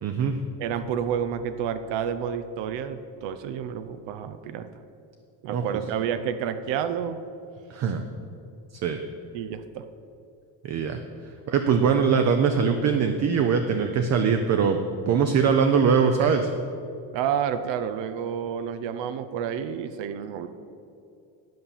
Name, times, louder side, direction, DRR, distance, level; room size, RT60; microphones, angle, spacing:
voice 1, 0.0-0.4 5.5-5.6 7.7-8.0 8.8-9.0 10.6-11.0 11.5-14.8 15.1-16.5, right 6 dB, 40° right, 6 dB, 0.5 m, -22 dB
voice 2, 0.6-4.7 5.4-7.2 9.3-9.8 17.1-20.5, right 8 dB, 80° right, 10 dB, 0.7 m, -29 dB
10.5 x 5.7 x 7.0 m, 2.7 s
cardioid pair, 165°, 43 cm